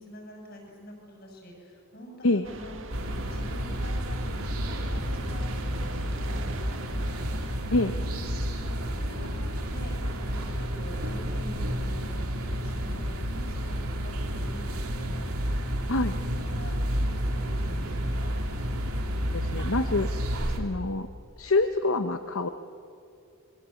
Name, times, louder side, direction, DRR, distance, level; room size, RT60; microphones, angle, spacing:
voice 1, 0.0-9.9 10.3-15.5 16.0-18.3, left 1 dB, 45° left, 1 dB, 7.1 m, -46 dB
sound 1, 2.4-7.6, right 2 dB, 60° right, 1.7 m, -43 dB
sound 2, 2.9-20.6, equal, 85° right, 3.0 m, -30 dB
voice 2, 19.3-20.1 20.6-21.1 21.4-22.5, left 2 dB, 70° left, 9 dB, 0.9 m, -26 dB
26.5 x 22.0 x 8.5 m, 2.4 s
head